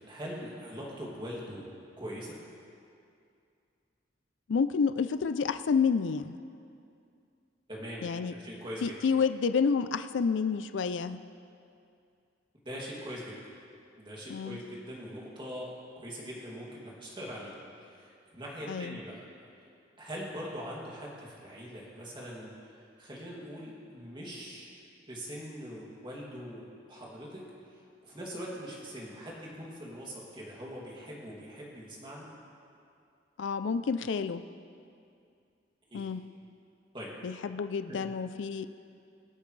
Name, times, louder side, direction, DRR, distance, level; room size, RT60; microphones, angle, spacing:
voice 1, 0.1-1.7 2.0-2.4 7.7-9.0 12.6-13.4 14.0-15.7 16.0-19.2 20.0-22.5 23.0-24.8 25.1-27.4 27.7-32.3 35.9-36.1 36.9-37.1 37.9-38.1, equal, 25° right, -5 dB, 2.5 m, -42 dB
voice 2, 4.5-6.4 8.0-8.3 8.8-11.2 14.3-14.6 18.7-19.0 33.4-34.4 35.9-36.2 37.2-38.7, left 5 dB, 75° left, 12 dB, 0.4 m, -29 dB
24.0 x 8.5 x 3.3 m, 2.4 s
head